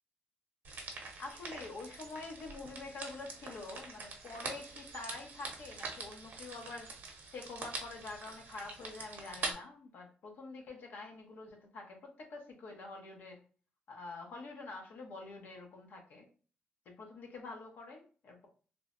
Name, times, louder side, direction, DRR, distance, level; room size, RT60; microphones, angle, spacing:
sound 1, 0.6-9.5, right 3 dB, 60° right, 0.7 m, -44 dB
voice 1, 1.2-7.0 7.3-13.4 13.9-16.3 16.9-18.5, left 3 dB, 70° left, 2 dB, 0.7 m, -46 dB
3.1 x 2.0 x 2.5 m, 0.39 s
cardioid pair, 135°, 3 cm